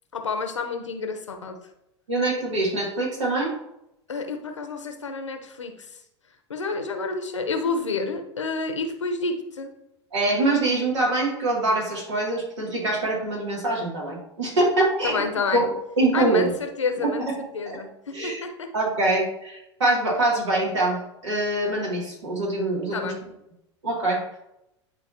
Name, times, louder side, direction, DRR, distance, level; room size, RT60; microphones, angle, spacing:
voice 1, 0.1-1.6 4.1-5.9 6.5-9.7 15.0-15.7 16.1-17.3 17.5-18.7 22.9-23.2, left 4 dB, 85° left, 6 dB, 0.9 m, -29 dB
voice 2, 2.1-3.5 10.1-15.2 15.5-16.5 17.2-17.3 17.7-17.8 18.1-18.4 18.7-23.1 23.8-24.2, right 2 dB, 75° right, -3 dB, 2.7 m, -24 dB
11.0 x 4.0 x 2.8 m, 0.84 s
figure-of-eight pair, 85°, 15 cm